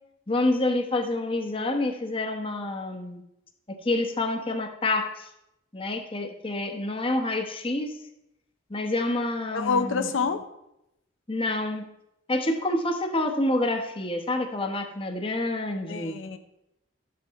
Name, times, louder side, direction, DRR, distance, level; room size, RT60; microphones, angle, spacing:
voice 1, 0.3-3.2 3.7-5.3 5.7-8.0 8.7-10.1 11.3-11.9 12.3-16.2, left 2 dB, 25° left, 4 dB, 0.9 m, -28 dB
voice 2, 9.5-10.4 15.9-16.4, left 5 dB, 75° left, 8 dB, 0.6 m, -27 dB
12.0 x 7.7 x 4.1 m, 0.86 s
head